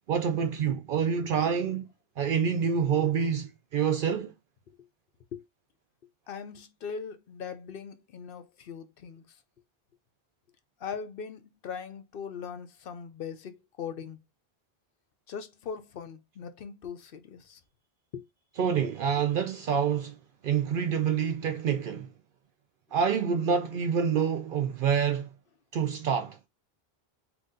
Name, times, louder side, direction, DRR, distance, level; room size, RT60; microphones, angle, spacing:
voice 1, 0.1-1.9 2.2-4.3 18.6-20.2 20.4-22.1 22.9-25.3 25.7-26.4, right 7 dB, 65° right, 0.7 m, -27 dB
voice 2, 6.3-9.2 10.8-14.2 15.3-17.6 18.1-18.3, left 6 dB, 65° left, 0.8 m, -40 dB
4.0 x 3.0 x 3.7 m
omnidirectional pair, 1.0 m